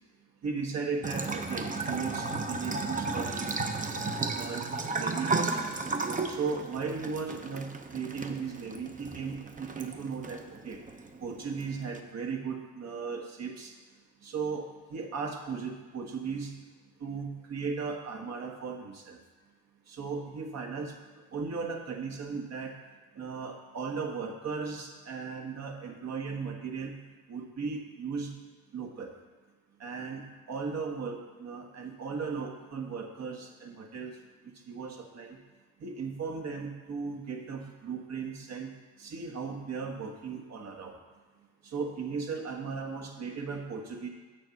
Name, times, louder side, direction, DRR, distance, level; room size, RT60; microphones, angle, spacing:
voice 1, 0.4-3.5 4.0-4.7 4.9-5.7 6.3-10.8 11.2-13.7 14.2-16.5 17.0-19.2 19.9-20.9 21.3-22.7 23.1-27.0 27.3-28.3 28.7-29.1 29.8-30.2 30.5-34.1 34.7-35.4 35.8-38.7 39.0-40.9 41.6-44.1, right 5 dB, 60° right, 2 dB, 1.5 m, -36 dB
Bathtub (filling or washing) / Trickle dribble, 1.0-12.0, right 3 dB, 25° right, 0.8 m, -34 dB
7.0 x 6.9 x 5.9 m, 1.4 s
cardioid pair, 90°, 30 cm